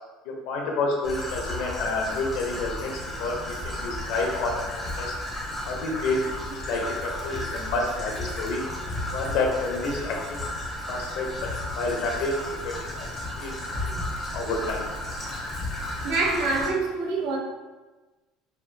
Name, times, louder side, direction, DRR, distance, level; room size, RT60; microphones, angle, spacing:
voice 1, 0.2-2.9 3.2-5.1 5.6-8.6 9.1-10.4 10.9-12.4 12.6-13.9 14.3-14.9, left 3 dB, 70° left, 0 dB, 0.9 m, -29 dB
Traffic noise roadway noise / Trickle dribble, 1.0-16.7, left 1 dB, 15° left, 0.9 m, -33 dB
voice 2, 16.0-17.4, right 3 dB, 70° right, 0 dB, 0.8 m, -25 dB
5.3 x 3.0 x 2.2 m, 1.2 s
cardioid pair, 155°, 0 cm